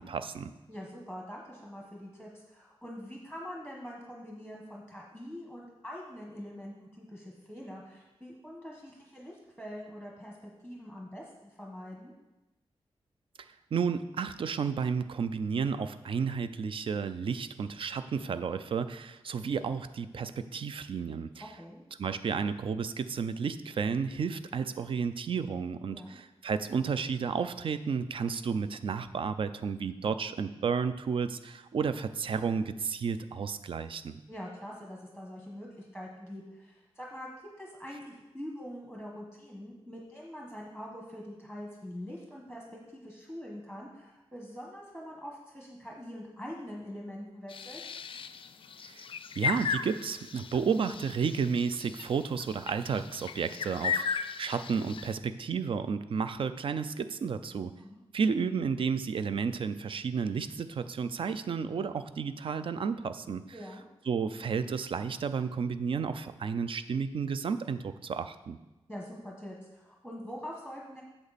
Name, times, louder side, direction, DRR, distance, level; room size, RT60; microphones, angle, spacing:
voice 1, 0.0-0.5 13.4-21.5 22.0-34.2 48.8-49.1 49.4-57.7 58.1-63.5 64.1-68.6, right 6 dB, 55° right, 12 dB, 0.5 m, -32 dB
voice 2, 0.7-12.1 21.4-21.9 25.9-26.2 34.3-37.3 37.6-47.8 57.8-58.0 63.5-63.9 68.9-71.0, equal, 5° right, -2 dB, 1.3 m, -44 dB
sound 1, 47.5-55.1, left 6 dB, 55° left, 0.4 m, -36 dB
8.3 x 7.1 x 4.1 m, 1.0 s
wide cardioid pair, 120°, 10 cm